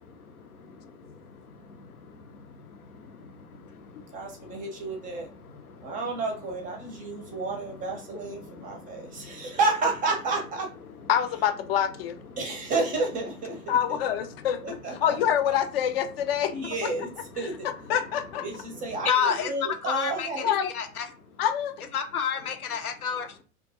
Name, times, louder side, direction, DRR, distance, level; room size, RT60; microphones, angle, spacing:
voice 1, 4.1-5.3 5.8-10.7 12.4-14.0 14.6-15.2 16.5-17.1 17.4-17.7 18.4-20.5, right 3 dB, 20° right, 2 dB, 0.5 m, -31 dB
voice 2, 11.1-12.2 13.7-16.9 17.4-18.5 20.4-20.7 21.4-21.7, left 9 dB, 45° left, 9 dB, 0.4 m, -26 dB
voice 3, 19.0-19.5 19.9-21.1 21.9-23.4, left 7 dB, 85° left, 5 dB, 0.6 m, -28 dB
2.2 x 2.1 x 2.7 m, 0.35 s
figure-of-eight pair, 95°, 43 cm